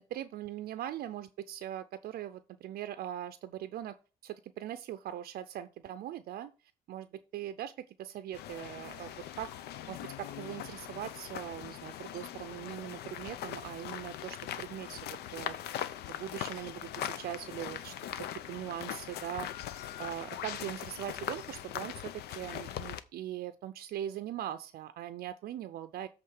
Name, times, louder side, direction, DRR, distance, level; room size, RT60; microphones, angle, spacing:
voice 1, 0.0-4.0 4.2-6.5 6.9-7.7 8.0-9.5 9.9-15.8 16.2-26.1, right 12 dB, 60° right, 10 dB, 0.5 m, -41 dB
sound 1, 8.3-23.0, left 11 dB, 75° left, 0.6 m, -41 dB
7.7 x 3.7 x 6.4 m, 0.34 s
cardioid pair, 110°, 17 cm